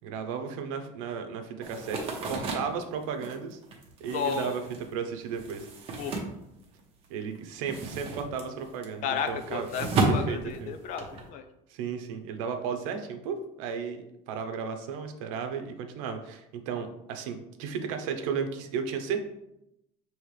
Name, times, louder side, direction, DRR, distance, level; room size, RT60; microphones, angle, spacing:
voice 1, 0.0-3.6 4.0-4.6 4.9-5.7 7.1-9.7 10.1-10.8 11.7-19.2, right 6 dB, 90° right, 6 dB, 0.7 m, -34 dB
sound 1, 1.6-7.0 7.3-11.2, right 3 dB, 35° right, 0.9 m, -33 dB
voice 2, 4.1-4.7 6.0-6.2 9.0-11.5, left 7 dB, 50° left, 8 dB, 0.6 m, -33 dB
5.6 x 3.0 x 3.2 m, 0.85 s
cardioid pair, 150°, 16 cm